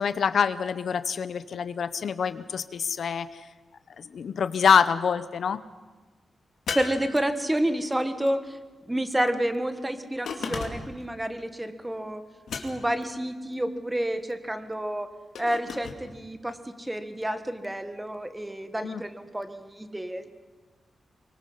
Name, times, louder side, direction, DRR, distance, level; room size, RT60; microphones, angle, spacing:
voice 1, 0.0-3.3 4.0-5.6 18.8-19.0, left 6 dB, 65° left, 13 dB, 0.7 m, -25 dB
sound 1, 6.7-7.8 10.3-11.0 12.5-13.1 15.3-16.0, left 5 dB, 85° left, 2.5 m, -35 dB
voice 2, 6.7-8.6 8.9-12.2 12.5-15.1 15.4-20.3, right 1 dB, 10° right, 9 dB, 1.4 m, -29 dB
24.5 x 23.5 x 5.6 m, 1.3 s
wide cardioid pair, 135°, 0 cm